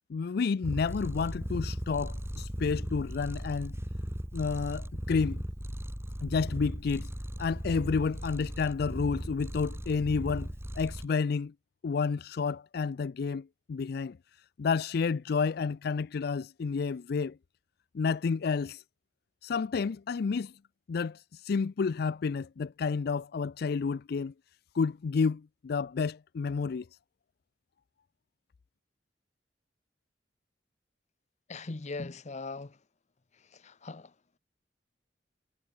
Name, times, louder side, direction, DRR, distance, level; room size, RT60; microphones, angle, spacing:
voice 1, 0.1-3.7 4.3-5.4 6.2-7.1 7.4-10.5 10.8-11.5 11.8-14.2 14.6-17.4 17.9-18.8 19.4-20.5 20.9-24.3 24.7-26.9, left 5 dB, 60° left, 0.4 m, -30 dB
Purr, 0.6-11.1, equal, 15° right, 2.9 m, -37 dB
voice 2, 31.5-32.7 33.6-34.1, left 3 dB, 40° left, 0.8 m, -39 dB
head